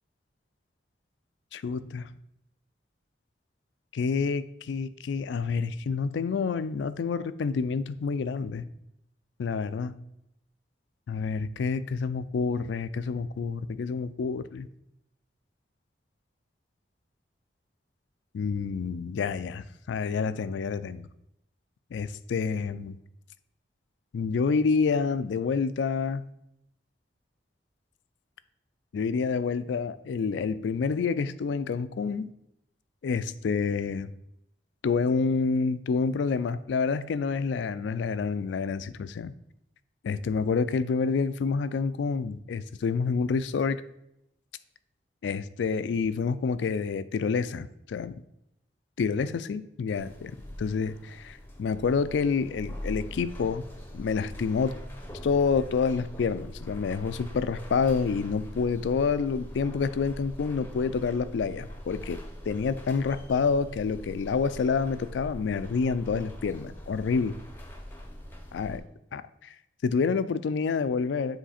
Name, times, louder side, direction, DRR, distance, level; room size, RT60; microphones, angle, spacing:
voice 1, 1.5-2.1 3.9-8.7 9.4-9.9 11.1-14.7 18.3-21.1 21.9-23.0 24.1-26.2 28.9-32.3 33.0-34.1 34.8-39.3 40.0-43.8 45.2-48.1 49.0-53.6 53.9-54.7 55.2-62.2 62.5-67.3 68.5-68.8 69.1-69.5 69.8-71.4, left 5 dB, 80° left, 14 dB, 0.3 m, -28 dB
sound 1, 49.9-68.8, equal, 10° left, 0.6 m, -42 dB
7.3 x 3.2 x 4.2 m, 0.81 s
head